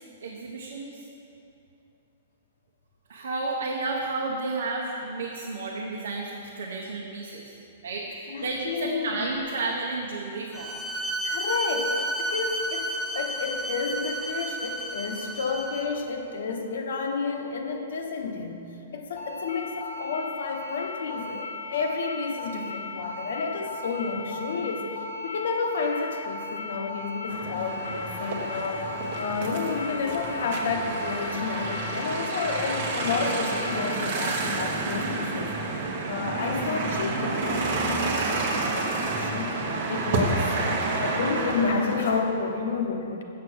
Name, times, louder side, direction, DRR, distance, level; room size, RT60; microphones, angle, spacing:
voice 1, 0.2-1.0 3.1-7.6 7.8-10.8, right 3 dB, 80° right, -2 dB, 1.1 m, -32 dB
voice 2, 8.3-9.3 11.2-12.9 13.1-18.6 18.8-24.9 25.2-35.5 36.1-43.2, left 4 dB, 60° left, 3 dB, 0.9 m, -31 dB
Bowed string instrument, 10.5-16.0, right 1 dB, ahead, 0.4 m, -31 dB
sound 1, 19.2-34.0, left 3 dB, 90° left, 1.8 m, -37 dB
sound 2, 27.3-42.2, right 3 dB, 35° right, 1.0 m, -29 dB
7.6 x 7.4 x 6.2 m, 2.8 s
hypercardioid pair, 180°, 0 cm